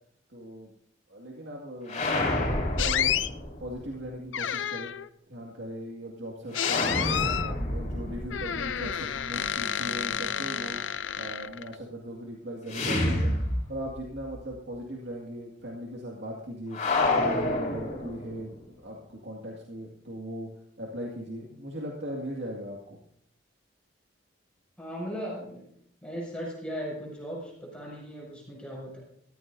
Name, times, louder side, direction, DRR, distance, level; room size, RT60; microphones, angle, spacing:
voice 1, 0.3-0.7 1.1-2.5 2.7-4.9 5.3-10.8 11.1-13.3 13.7-16.8 17.1-20.5 20.8-23.0, equal, 70° right, -2 dB, 2.1 m, -39 dB
sound 1, 1.9-3.8 6.5-9.5 12.7-14.1 14.4-14.5 16.7-18.5, left 2 dB, 40° left, 3.8 m, -29 dB
sound 2, 2.8-3.3 4.3-5.1 6.5-7.5 8.3-11.7, left 9 dB, 90° left, 0.5 m, -30 dB
voice 2, 24.8-25.7 26.0-29.0, equal, 5° left, -5 dB, 6.6 m, -37 dB
18.0 x 15.0 x 2.7 m, 0.69 s
head